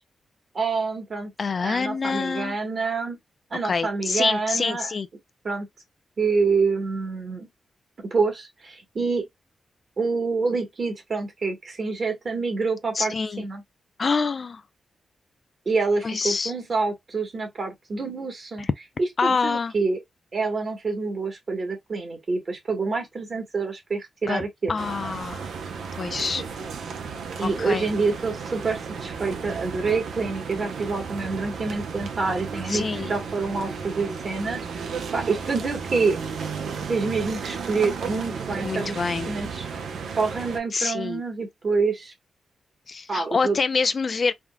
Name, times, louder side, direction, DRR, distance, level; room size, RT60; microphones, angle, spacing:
voice 1, 0.5-1.3 1.6-3.2 3.5-4.9 5.4-5.7 6.2-7.5 8.1-9.3 10.0-13.6 15.6-18.7 19.0-20.0 20.3-24.7 27.4-34.6 35.1-36.2 36.9-39.7 40.2-42.1 43.1-43.6, right 4 dB, 55° right, 1.4 m, -27 dB
voice 2, 1.4-2.6 3.6-5.1 13.0-13.4 14.0-14.6 16.0-16.5 18.6-18.7 19.2-19.7 24.3-25.4 26.0-26.4 27.4-27.9 32.7-33.1 38.6-39.3 40.7-41.2 42.9-44.3, left 4 dB, 55° left, 0.3 m, -26 dB
sound 1, 24.8-40.6, right 5 dB, 80° right, 0.6 m, -34 dB
3.5 x 2.3 x 2.2 m
supercardioid pair, 45°, 0 cm